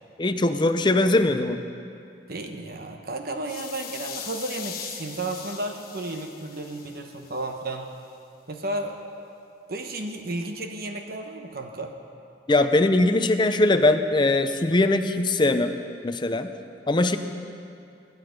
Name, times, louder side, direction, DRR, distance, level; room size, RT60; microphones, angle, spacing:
voice 1, 0.2-1.6 12.5-15.8 16.0-16.5 16.9-17.2, left 2 dB, 25° left, 8 dB, 0.6 m, -21 dB
voice 2, 2.3-7.9 8.5-9.0 9.7-11.9, right 2 dB, 55° right, 4 dB, 1.0 m, -33 dB
sound 1, 3.4-7.5, left 8 dB, 50° left, 1.2 m, -40 dB
20.5 x 10.5 x 5.2 m, 2.6 s
head